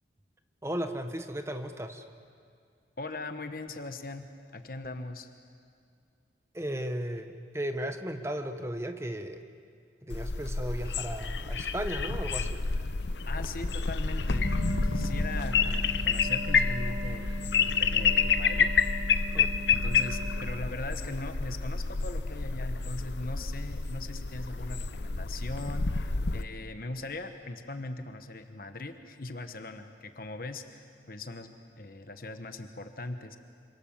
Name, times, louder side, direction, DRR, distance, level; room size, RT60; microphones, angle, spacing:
voice 1, 0.6-2.0 6.5-9.4 10.0-12.6 19.3-19.5, right 1 dB, 15° right, 7 dB, 1.2 m, -35 dB
voice 2, 3.0-5.3 13.3-14.5 14.8-18.7 19.7-33.4, left 2 dB, 55° left, 7 dB, 1.2 m, -40 dB
sound 1, 10.1-26.4, left 5 dB, 80° left, 0.8 m, -29 dB
Wind instrument woodwind instrument, 14.3-20.8, right 1 dB, 40° right, 3.3 m, -40 dB
27.0 x 26.0 x 7.3 m, 2.3 s
head